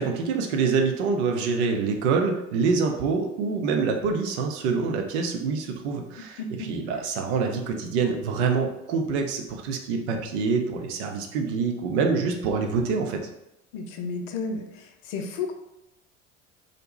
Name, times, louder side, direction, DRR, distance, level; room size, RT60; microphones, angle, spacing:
voice 1, 0.0-13.2, right 5 dB, 60° right, 3 dB, 0.5 m, -26 dB
voice 2, 6.4-6.7 13.7-15.5, left 4 dB, 50° left, 5 dB, 0.5 m, -32 dB
2.5 x 2.1 x 3.1 m, 0.85 s
figure-of-eight pair, 60°, 38 cm